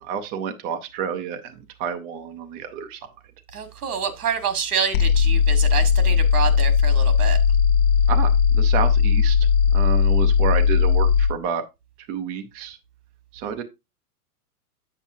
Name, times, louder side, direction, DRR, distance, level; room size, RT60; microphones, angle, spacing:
voice 1, 0.0-3.0 8.1-9.4 9.7-11.6 12.1-12.8 13.3-13.6, right 7 dB, 15° right, 0.4 m, -29 dB
voice 2, 3.5-7.4, right 6 dB, 80° right, 1.6 m, -27 dB
sound 1, 4.9-11.3, left 6 dB, 60° left, 0.9 m, -18 dB
8.1 x 7.3 x 2.6 m
hypercardioid pair, 125°, 45 cm